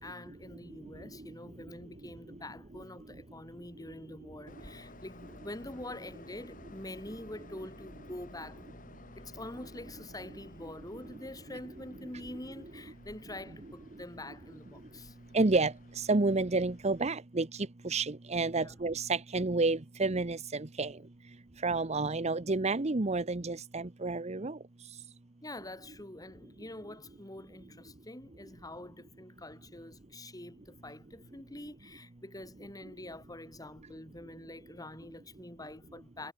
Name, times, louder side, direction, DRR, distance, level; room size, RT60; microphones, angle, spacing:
voice 1, 0.0-8.9 9.1-15.2 18.5-18.8 25.4-36.3, left 1 dB, 20° left, 5.6 m, -46 dB
Train, 4.5-17.1, left 2 dB, 45° left, 6.4 m, -55 dB
voice 2, 15.3-15.7 16.1-17.5 17.8-20.4 20.8-20.9 21.6-24.5, right 3 dB, 35° right, 0.9 m, -29 dB
head